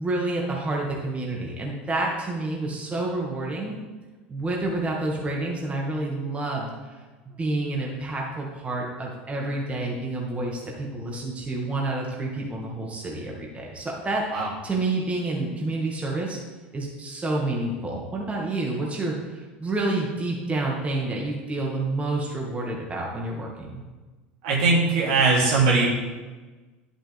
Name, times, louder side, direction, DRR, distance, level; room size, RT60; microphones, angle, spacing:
voice 1, 0.0-3.8 4.3-6.9 7.4-16.4 16.7-23.8, right 2 dB, 20° right, -2 dB, 2.1 m, -29 dB
voice 2, 24.4-25.9, right 3 dB, 70° right, -4 dB, 3.0 m, -20 dB
11.0 x 7.4 x 3.5 m, 1.3 s
hypercardioid pair, 80°, 6 cm